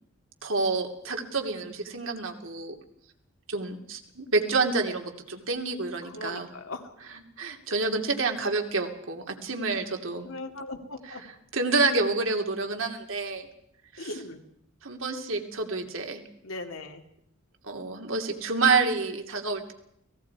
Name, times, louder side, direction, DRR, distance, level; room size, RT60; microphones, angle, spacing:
voice 1, 0.4-2.7 3.5-6.5 7.4-10.3 11.5-13.5 13.9-14.1 14.8-16.2 17.6-19.7, right 3 dB, 65° right, 3 dB, 2.7 m, -28 dB
voice 2, 6.0-6.9 9.7-9.9 10.2-11.2 14.0-14.4 15.8-15.9 16.4-17.0, left 2 dB, 75° left, 4 dB, 2.5 m, -39 dB
29.5 x 19.5 x 4.8 m, 0.72 s
head